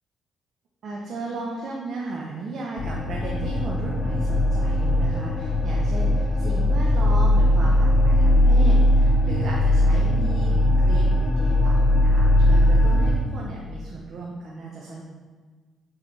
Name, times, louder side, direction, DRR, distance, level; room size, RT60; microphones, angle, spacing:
voice 1, 0.8-15.0, right 2 dB, 60° right, -2 dB, 0.8 m, -35 dB
sound 1, 2.8-13.2, left 1 dB, 45° left, 0.7 m, -19 dB
8.6 x 3.9 x 3.2 m, 1.4 s
cardioid pair, 90°, 0 cm